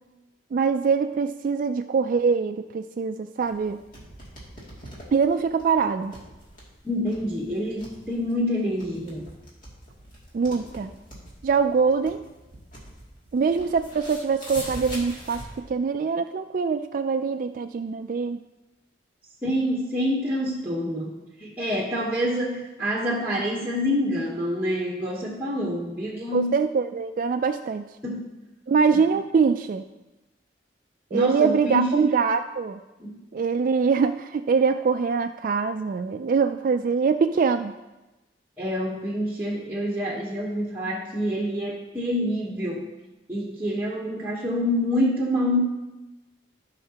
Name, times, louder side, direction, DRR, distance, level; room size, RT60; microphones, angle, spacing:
voice 1, 0.5-3.8 5.1-6.1 10.3-10.9 11.4-12.2 13.3-18.4 26.3-27.9 28.7-29.8 31.1-32.8 33.3-37.7, right 5 dB, 50° right, 8 dB, 0.3 m, -23 dB
sound 1, 3.4-15.6, equal, 50° left, 2.6 m, -43 dB
voice 2, 6.8-9.3 19.4-26.5 28.0-28.2 31.1-32.1 33.0-33.2 38.6-42.8 43.3-45.6, equal, 10° right, -5 dB, 1.1 m, -27 dB
15.5 x 5.7 x 2.9 m, 1.0 s
head